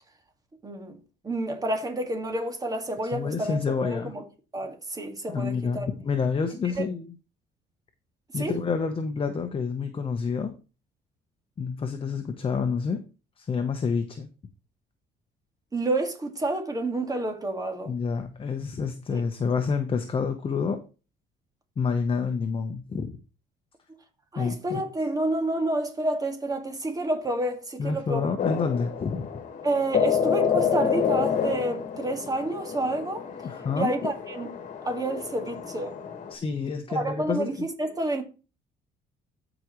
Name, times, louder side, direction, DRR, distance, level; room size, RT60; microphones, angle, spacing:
voice 1, 0.6-1.0 1.2-4.2 4.5-5.9 6.6-6.9 8.4-8.6 15.7-17.9 19.1-19.2 24.3-28.3 29.6-33.3 33.8-34.5 34.8-35.9 36.9-38.2, right 2 dB, 20° right, 1.9 m, -29 dB
voice 2, 3.1-4.1 5.3-7.2 8.3-10.5 11.6-13.0 13.4-14.3 17.8-20.8 21.8-23.1 24.4-24.8 27.8-29.3 33.4-34.1 36.3-37.5, left 5 dB, 30° left, 0.9 m, -28 dB
sound 1, 28.4-36.3, left 7 dB, 45° left, 1.7 m, -28 dB
14.0 x 5.0 x 3.1 m
cardioid pair, 110°, 17 cm